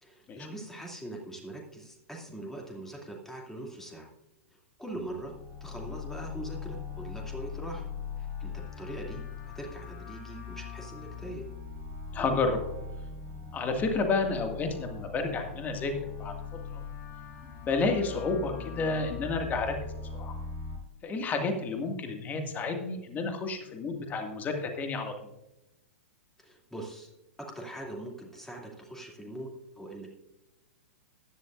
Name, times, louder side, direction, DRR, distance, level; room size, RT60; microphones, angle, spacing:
voice 1, 0.0-4.1 4.8-5.3 5.6-7.8 8.2-9.2 9.5-11.5 26.4-27.1 27.4-30.1, right 1 dB, 5° left, 0 dB, 2.6 m, -42 dB
sound 1, 4.9-20.8, left 6 dB, 50° left, 3.1 m, -41 dB
voice 2, 12.1-12.6 13.5-15.9 16.2-16.3 16.7-16.8 17.4-19.7 20.1-20.3 21.0-25.1, left 3 dB, 25° left, 5 dB, 1.8 m, -30 dB
15.0 x 11.0 x 2.5 m, 0.96 s
figure-of-eight pair, 105°, 7 cm